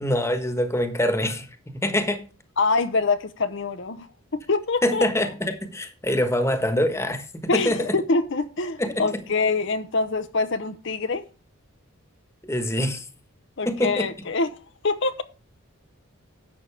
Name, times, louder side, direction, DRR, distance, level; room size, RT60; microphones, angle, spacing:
voice 1, 0.0-1.5 1.8-2.3 4.8-8.0 8.8-9.2 12.4-13.1 13.6-14.1, left 1 dB, 10° left, 1.3 m, -25 dB
voice 2, 2.6-4.1 4.3-5.0 7.5-11.2 13.6-14.5 14.8-15.2, left 3 dB, 55° left, 0.7 m, -25 dB
11.5 x 8.0 x 3.4 m
head